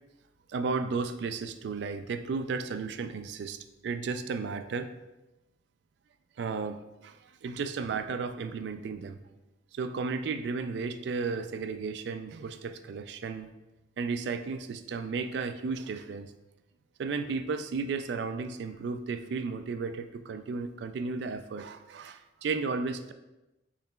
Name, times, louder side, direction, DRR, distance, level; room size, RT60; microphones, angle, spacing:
voice 1, 0.5-4.9 6.4-9.2 9.7-13.5 14.0-16.3 17.0-23.1, right 4 dB, 60° right, 9 dB, 0.3 m, -34 dB
5.9 x 4.0 x 2.2 m, 1.0 s
head